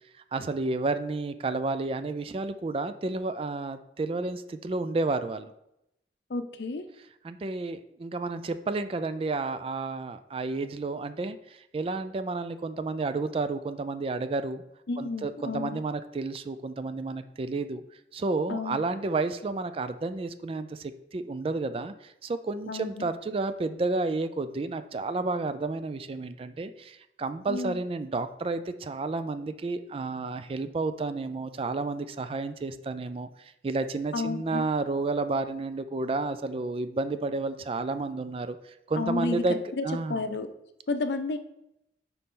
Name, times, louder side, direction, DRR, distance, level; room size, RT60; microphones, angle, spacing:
voice 1, 0.3-5.5 7.2-14.6 15.0-17.8 18.1-38.6 38.9-39.6 39.8-40.2, right 3 dB, 30° right, 11 dB, 0.3 m, -31 dB
voice 2, 6.3-6.8 14.9-15.8 18.5-18.8 22.7-23.1 27.5-27.8 34.1-34.7 39.0-39.8 40.1-40.5 40.9-41.4, left 3 dB, 75° left, 9 dB, 0.6 m, -31 dB
6.7 x 4.1 x 3.7 m, 0.83 s
head